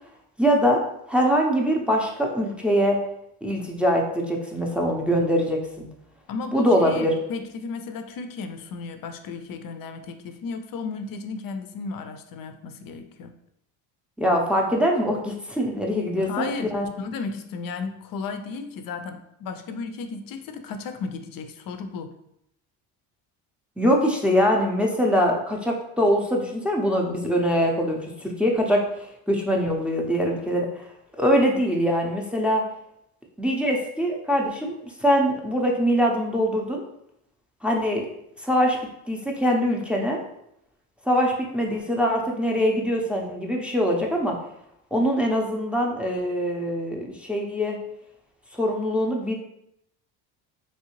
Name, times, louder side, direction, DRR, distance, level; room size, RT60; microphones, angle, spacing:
voice 1, 0.4-0.8 1.1-3.0 3.4-5.9 6.5-7.1 14.2-16.9 23.8-30.9 31.2-32.6 33.4-34.7 35.0-36.8 37.6-38.1 38.4-38.8 39.1-40.2 41.1-44.4 44.9-47.8 48.5-49.3, equal, 5° right, -1 dB, 0.5 m, -23 dB
voice 2, 6.3-13.3 16.2-22.1, left 4 dB, 50° left, 7 dB, 0.5 m, -34 dB
3.2 x 2.7 x 3.0 m, 0.78 s
supercardioid pair, 80°, 46 cm